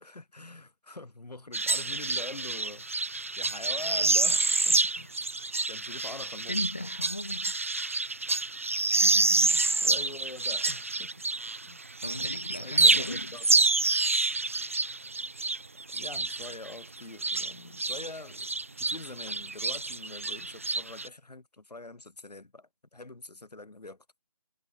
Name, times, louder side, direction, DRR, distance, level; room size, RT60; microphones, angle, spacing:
voice 1, 0.0-5.2 5.7-6.5 9.8-11.1 11.7-11.8 12.2-12.3 12.6-13.5 15.9-24.0, left 2 dB, 85° left, 7.8 m, -44 dB
sound 1, 1.5-11.7 12.0-18.1 18.3-21.1, right 3 dB, 20° right, 1.2 m, -28 dB
voice 2, 6.5-7.6 8.9-10.0 12.0-13.4, left 2 dB, 15° left, 1.0 m, -38 dB
figure-of-eight pair, 180°, 20 cm